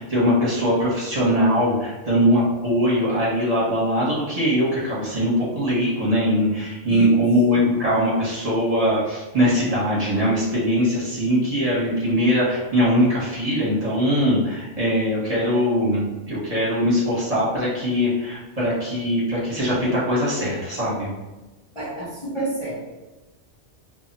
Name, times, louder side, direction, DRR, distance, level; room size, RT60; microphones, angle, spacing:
voice 1, 0.0-21.1, equal, 35° right, -8 dB, 0.8 m, -21 dB
voice 2, 6.9-7.7 21.8-22.9, right 1 dB, 35° left, -8 dB, 0.5 m, -29 dB
2.3 x 2.1 x 3.8 m, 1.1 s
omnidirectional pair, 1.2 m